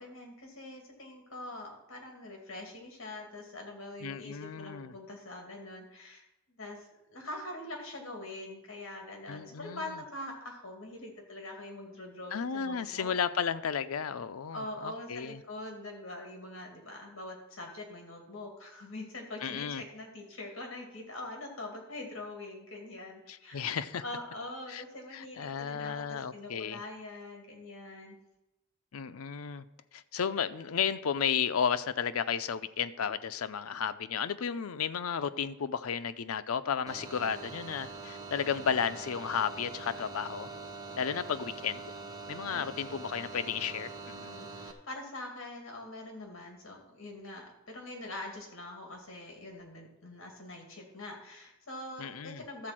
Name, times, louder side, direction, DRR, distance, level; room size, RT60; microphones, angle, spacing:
voice 1, 0.0-13.1 14.5-23.6 24.0-28.2 42.5-42.8 44.1-52.7, left 2 dB, 65° left, 2 dB, 2.3 m, -44 dB
voice 2, 4.0-4.9 9.3-10.0 12.3-15.4 19.4-19.8 23.3-24.0 24.7-24.8 25.1-26.8 28.9-29.6 29.9-40.5 41.0-41.8 42.3-44.3 52.0-52.4, left 7 dB, 85° left, 12 dB, 0.5 m, -33 dB
sound 1, 36.9-44.7, right 3 dB, 15° right, 0.8 m, -44 dB
12.5 x 4.2 x 7.5 m, 0.90 s
head